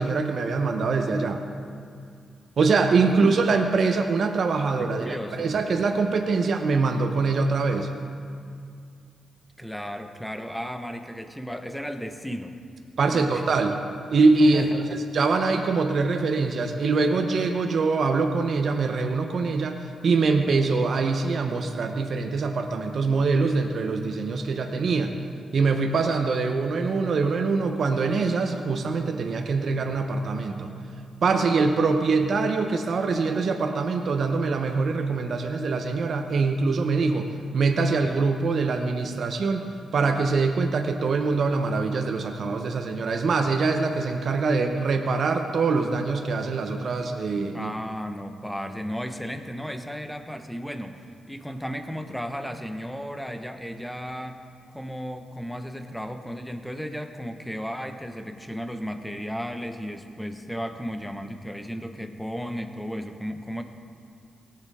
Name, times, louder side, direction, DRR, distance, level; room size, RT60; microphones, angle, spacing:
voice 1, 0.0-1.4 2.6-7.9 13.0-13.8 14.1-14.8 15.1-25.1 25.5-30.7 31.2-37.3 37.5-47.7, right 4 dB, 65° right, 5 dB, 0.8 m, -24 dB
voice 2, 5.0-5.6 9.6-12.6 13.1-13.6 14.4-14.8 47.5-54.4 54.7-63.6, equal, 5° left, 6 dB, 1.2 m, -34 dB
17.5 x 7.8 x 3.7 m, 2.2 s
supercardioid pair, 45°, 0 cm